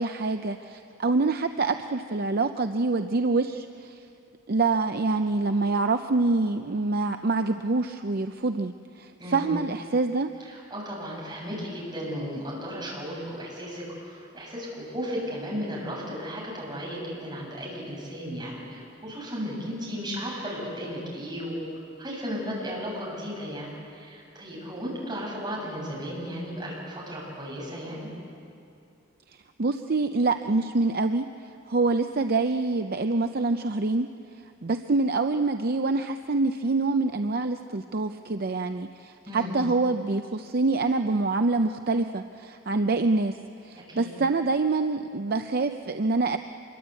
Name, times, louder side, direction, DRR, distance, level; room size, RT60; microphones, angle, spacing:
voice 1, 0.0-4.0 4.5-10.3 29.6-31.3 31.7-34.1 34.6-43.4 43.6-46.4, right 3 dB, 50° right, 7 dB, 0.6 m, -26 dB
voice 2, 9.2-9.6 10.5-21.7 22.0-28.1 39.3-39.5 43.9-44.1, equal, 20° right, -4 dB, 7.7 m, -35 dB
25.5 x 22.5 x 8.3 m, 2.5 s
head